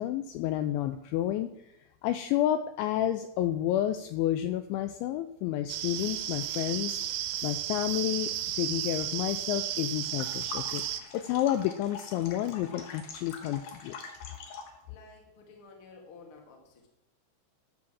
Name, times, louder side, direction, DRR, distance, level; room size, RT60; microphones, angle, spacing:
voice 1, 0.0-1.5 2.0-7.0 7.4-10.8 11.1-14.0, left 12 dB, 85° left, 10 dB, 2.7 m, -30 dB
sound 1, 5.7-11.0, right 12 dB, 85° right, 3.1 m, -33 dB
sound 2, 10.0-14.8, left 5 dB, 65° left, 2.5 m, -44 dB
voice 2, 14.9-16.9, left 4 dB, 50° left, 1 dB, 1.6 m, -52 dB
11.0 x 6.0 x 7.4 m, 0.88 s
omnidirectional pair, 5.7 m